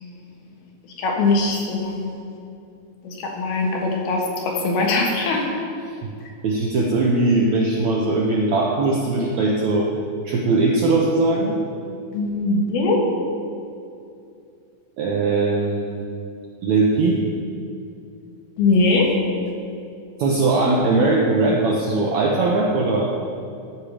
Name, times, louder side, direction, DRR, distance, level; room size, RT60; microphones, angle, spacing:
voice 1, 1.0-2.2 3.0-5.4 12.1-13.0 18.6-19.1, left 3 dB, 75° left, -1 dB, 3.4 m, -21 dB
voice 2, 6.4-9.9 10.2-11.6 15.0-16.2 16.6-17.2 20.2-23.1, right 3 dB, 75° right, -2 dB, 1.7 m, -20 dB
14.0 x 7.4 x 5.0 m, 2.5 s
omnidirectional pair, 4.4 m